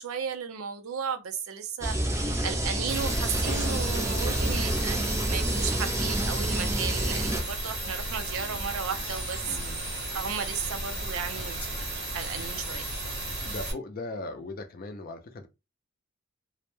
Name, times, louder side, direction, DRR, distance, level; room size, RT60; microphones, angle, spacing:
voice 1, 0.0-11.6 12.1-12.8, right 7 dB, 80° right, 0.5 m, -35 dB
sound 1, 1.8-7.4, right 1 dB, 15° right, 0.5 m, -28 dB
sound 2, 2.9-13.7, right 2 dB, 50° right, 0.8 m, -34 dB
sound 3, 8.7-9.6 10.8-10.9 11.4-11.8 12.3-13.4, left 3 dB, 25° left, 0.9 m, -49 dB
voice 2, 9.4-9.9 13.4-15.5, left 2 dB, 45° left, 0.4 m, -39 dB
2.1 x 2.0 x 3.0 m
head